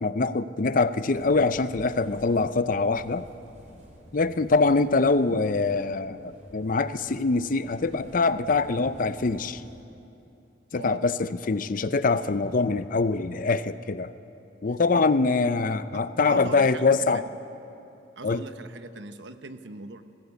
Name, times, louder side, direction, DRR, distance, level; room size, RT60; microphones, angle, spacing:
voice 1, 0.0-3.3 4.1-9.6 10.7-14.1 14.6-17.2 18.2-18.4, left 3 dB, 50° left, 13 dB, 0.6 m, -24 dB
sound 1, 1.0-9.8, equal, 45° right, 3.1 m, -51 dB
voice 2, 10.7-11.1 15.9-17.2 18.2-20.0, right 3 dB, 85° right, 9 dB, 1.0 m, -40 dB
20.5 x 16.0 x 8.2 m, 2.8 s
head